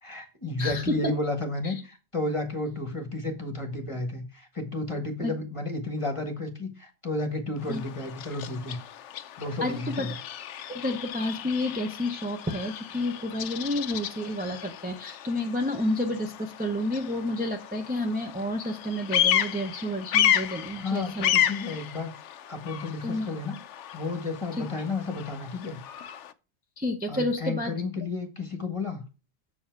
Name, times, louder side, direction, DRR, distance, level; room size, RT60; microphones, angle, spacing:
voice 1, 0.0-8.8 9.4-10.2 20.7-22.1 22.5-23.6 23.9-25.8 27.1-29.0, left 2 dB, 25° left, 6 dB, 1.3 m, -32 dB
voice 2, 0.6-1.1 1.6-1.7 5.2-5.3 7.7-7.8 9.6-10.1 10.7-21.3 23.0-23.3 24.6-24.7 26.8-27.7, left 1 dB, 10° right, 2 dB, 0.7 m, -30 dB
Bird vocalization bird call bird song, 7.6-26.3, left 11 dB, 65° left, 0.8 m, -32 dB
7.2 x 7.1 x 4.6 m, 0.32 s
omnidirectional pair, 1.4 m